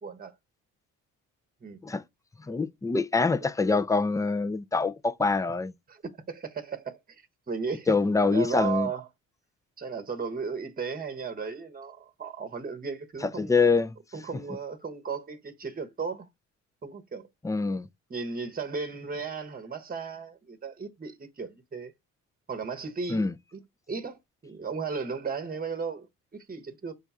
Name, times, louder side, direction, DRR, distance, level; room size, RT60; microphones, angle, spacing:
voice 1, 0.0-0.3 1.6-1.8 5.9-6.0 6.3-7.9 8.3-9.1 9.8-13.5 14.1-16.3 16.8-17.3 18.1-21.9 22.5-23.6 23.9-26.1 26.3-26.9, right 5 dB, 25° right, 1.0 m, -35 dB
voice 2, 2.5-5.7 7.9-8.9 13.4-13.9 17.4-17.9 23.1-23.3, left 4 dB, 10° left, 0.4 m, -25 dB
5.2 x 2.3 x 4.2 m
hypercardioid pair, 50°, 37 cm